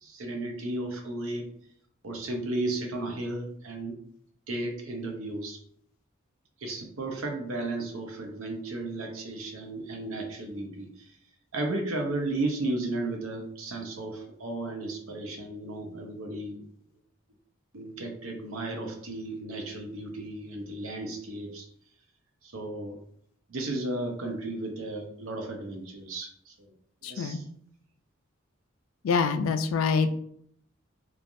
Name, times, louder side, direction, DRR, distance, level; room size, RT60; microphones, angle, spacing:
voice 1, 0.0-1.5 2.0-4.0 4.5-5.6 6.6-11.1 11.5-16.6 17.7-21.7 22.4-23.0 23.5-26.5 27.1-27.4, right 2 dB, 90° right, 3 dB, 0.7 m, -34 dB
voice 2, 27.0-27.4 29.0-30.1, left 5 dB, 80° left, 9 dB, 0.3 m, -25 dB
3.1 x 2.4 x 2.5 m, 0.67 s
head